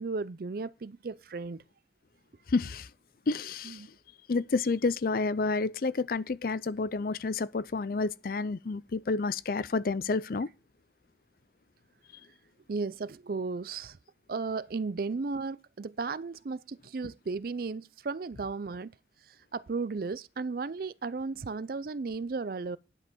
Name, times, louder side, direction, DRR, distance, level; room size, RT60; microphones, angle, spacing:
voice 1, 0.0-1.6 3.7-3.9 12.7-14.0 14.3-18.9 19.3-22.8, right 4 dB, 55° right, 0.4 m, -35 dB
voice 2, 2.5-2.9 3.3-3.9 4.3-10.5, left 3 dB, 50° left, 0.5 m, -30 dB
10.5 x 5.5 x 6.1 m
head